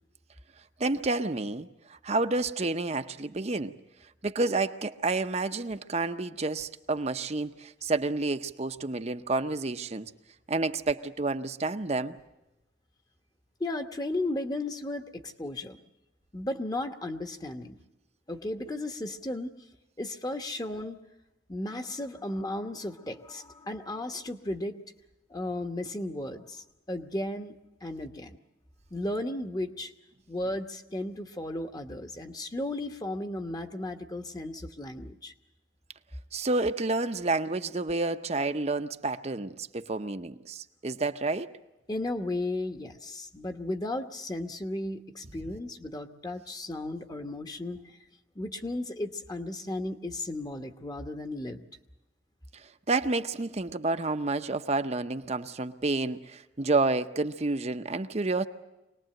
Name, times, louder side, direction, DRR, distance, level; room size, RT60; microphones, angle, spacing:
voice 1, 0.8-3.7 4.2-10.1 10.5-12.2 36.3-41.5 52.9-58.5, right 3 dB, 35° right, 0.7 m, -29 dB
voice 2, 13.6-15.8 16.3-17.8 18.3-19.5 20.0-21.0 21.5-24.8 25.3-27.6 27.8-28.4 28.9-29.9 30.3-35.3 41.9-48.0 48.3-51.6, left 1 dB, 20° left, 1.1 m, -35 dB
25.0 x 19.5 x 7.8 m
head